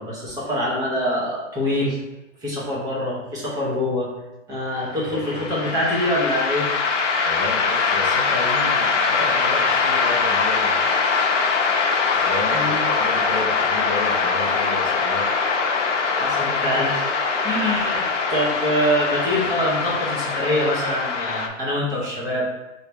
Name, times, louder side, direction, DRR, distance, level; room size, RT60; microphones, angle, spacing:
voice 1, 0.0-2.0 2.4-4.1 4.5-6.7 12.5-12.9 16.0-22.5, equal, 10° right, -5 dB, 0.8 m, -24 dB
sound 1, 5.1-21.5, left 4 dB, 65° left, 0.8 m, -22 dB
voice 2, 7.2-10.9 12.1-15.3, left 2 dB, 20° left, -3 dB, 0.3 m, -32 dB
3.3 x 2.8 x 4.3 m, 1.0 s
hypercardioid pair, 140°, 39 cm